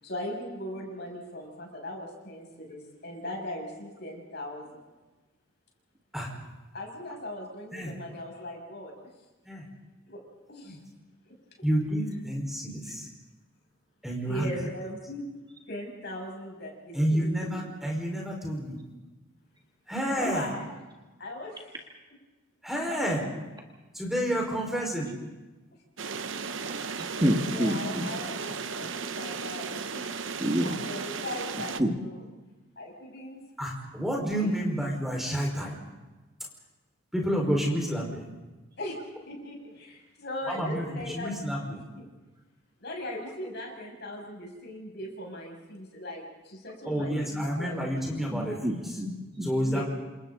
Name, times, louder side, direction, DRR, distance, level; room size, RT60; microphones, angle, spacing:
voice 1, 0.0-4.9 6.7-8.9 10.1-10.2 10.5-10.8 14.3-15.3 15.7-17.6 20.2-20.6 21.2-21.7 27.5-28.9 29.2-30.2 30.6-32.2 32.8-33.4 34.4-34.5 38.8-39.0 39.3-41.3 41.7-42.0 42.8-47.9 49.6-49.8, left 1 dB, 50° left, 0 dB, 6.7 m, -39 dB
voice 2, 11.6-13.1 14.0-14.5 16.9-18.8 19.9-20.5 22.6-23.2 23.9-25.1 33.6-35.8 37.1-38.2 40.5-41.8 46.8-48.8 49.4-49.8, equal, ahead, -1 dB, 4.8 m, -29 dB
sound 1, 26.0-31.8, right 5 dB, 60° right, 0.8 m, -35 dB
voice 3, 27.0-28.2 30.4-30.8 31.8-31.9 48.3-49.8, equal, 20° right, 1 dB, 1.8 m, -28 dB
28.5 x 27.0 x 4.0 m, 1.2 s
head